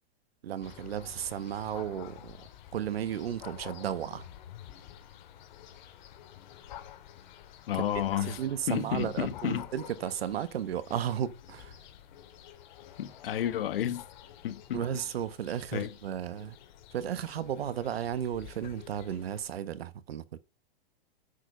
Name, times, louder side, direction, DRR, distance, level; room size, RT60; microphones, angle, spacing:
voice 1, 0.4-2.4 2.7-4.3 8.2-11.7 14.7-16.6 16.9-20.4, right 10 dB, 85° right, 1.2 m, -34 dB
sound 1, 0.6-19.4, left 10 dB, 50° left, 2.6 m, -49 dB
voice 2, 7.7-9.7 13.0-14.1 14.4-14.9 15.7-16.0, left 10 dB, 70° left, 1.6 m, -31 dB
9.9 x 6.8 x 5.3 m
supercardioid pair, 170°, 30 cm